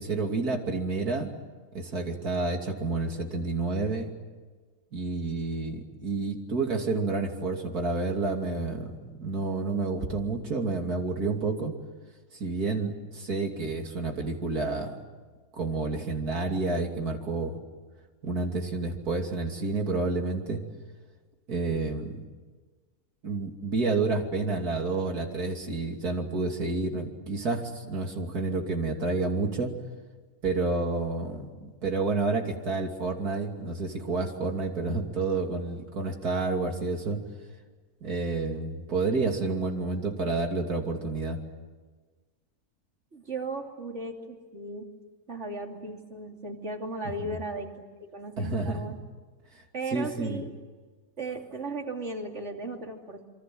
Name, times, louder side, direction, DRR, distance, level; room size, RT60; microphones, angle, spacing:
voice 1, 0.0-1.3 1.7-4.1 4.9-11.7 12.3-15.0 15.5-17.6 18.2-20.6 21.5-22.2 23.2-29.7 30.4-37.2 38.0-41.4 47.2-47.3 48.4-49.0 49.9-50.4, right 3 dB, 90° right, 3 dB, 3.3 m, -29 dB
voice 2, 43.1-44.9 45.3-47.8 48.1-49.0 49.7-50.5 51.2-53.3, right 2 dB, 50° right, 2 dB, 3.3 m, -36 dB
27.0 x 24.5 x 7.8 m, 1.4 s
omnidirectional pair, 1.6 m